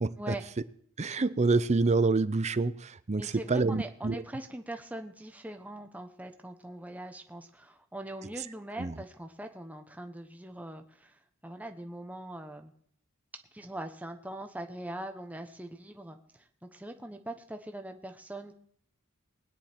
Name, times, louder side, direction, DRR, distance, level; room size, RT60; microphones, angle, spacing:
voice 1, 0.0-0.4 1.0-4.2 8.8-8.9, right 3 dB, 30° right, 0.6 m, -27 dB
voice 2, 3.2-12.7 13.5-18.5, right 1 dB, 5° right, 0.9 m, -42 dB
20.5 x 9.5 x 4.4 m
head